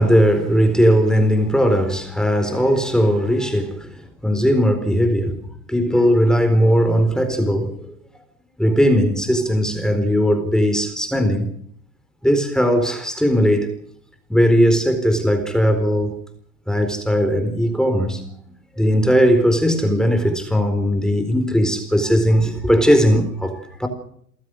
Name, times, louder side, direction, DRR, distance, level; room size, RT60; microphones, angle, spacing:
voice 1, 0.0-3.9 4.2-5.4 5.7-7.9 8.6-11.5 12.2-13.7 14.3-16.2 16.7-18.2 18.8-23.9, equal, ahead, 4.2 m, -18 dB
30.0 x 15.0 x 6.5 m
hypercardioid pair, 90°, 49 cm